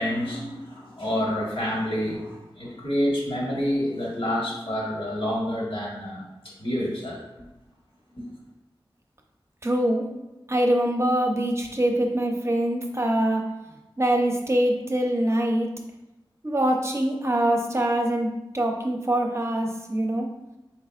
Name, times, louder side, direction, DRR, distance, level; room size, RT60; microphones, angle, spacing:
voice 1, 0.0-6.2 6.6-7.2 8.2-8.3, equal, 70° left, -5 dB, 1.4 m, -28 dB
voice 2, 9.6-10.1 10.5-13.4 14.0-15.7 16.4-20.3, right 1 dB, 30° right, 1 dB, 0.7 m, -24 dB
4.7 x 3.4 x 2.4 m, 1.0 s
wide cardioid pair, 45°, 9 cm